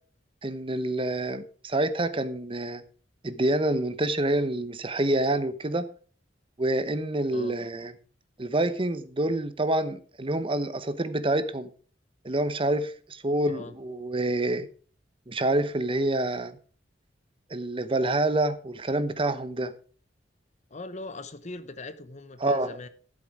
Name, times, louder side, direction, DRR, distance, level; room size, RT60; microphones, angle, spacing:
voice 1, 0.4-2.8 3.2-5.9 6.6-7.9 8.4-11.7 12.2-14.7 15.3-16.6 17.5-19.7 22.4-22.8, right 1 dB, 30° right, 0.9 m, -27 dB
voice 2, 20.7-22.9, left 2 dB, 40° left, 1.0 m, -40 dB
12.5 x 7.6 x 4.9 m
head